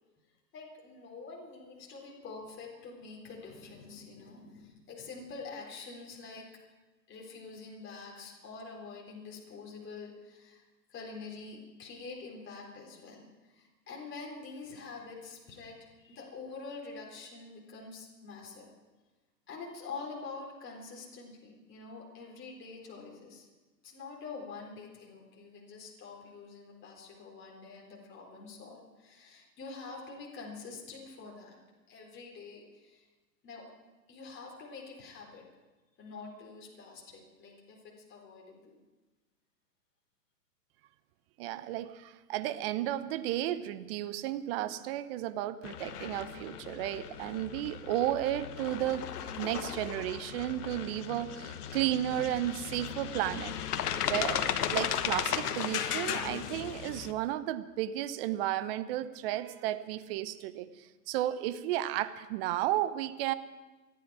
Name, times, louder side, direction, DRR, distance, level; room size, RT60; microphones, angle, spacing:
voice 1, 0.5-6.5 7.1-18.7 19.5-23.5 23.8-31.6 31.9-33.1 33.4-35.4 36.0-38.8, left 4 dB, 25° left, -2 dB, 4.0 m, -46 dB
voice 2, 41.4-49.0 49.4-53.5 54.1-63.3, right 13 dB, 40° right, 13 dB, 0.8 m, -33 dB
sound 1, 45.6-57.1, left 9 dB, 65° left, 1.3 m, -36 dB
28.0 x 10.5 x 4.9 m, 1.2 s
hypercardioid pair, 125°, 48 cm